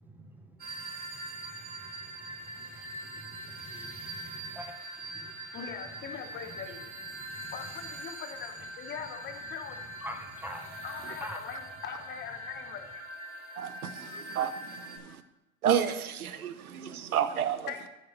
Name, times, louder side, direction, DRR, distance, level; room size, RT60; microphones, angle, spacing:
voice 1, 0.0-4.8 5.1-5.5 7.1-7.5 10.0-11.4, equal, 5° right, 0.9 m, -46 dB
sound 1, 0.6-15.0, right 1 dB, 20° right, 1.9 m, -42 dB
voice 2, 5.5-6.8 7.5-9.8 10.8-12.9 17.7-17.9, left 7 dB, 25° left, 1.0 m, -41 dB
voice 3, 13.6-15.2 15.6-17.7, right 9 dB, 90° right, 0.8 m, -31 dB
14.0 x 5.0 x 3.2 m
hypercardioid pair, 105°, 43 cm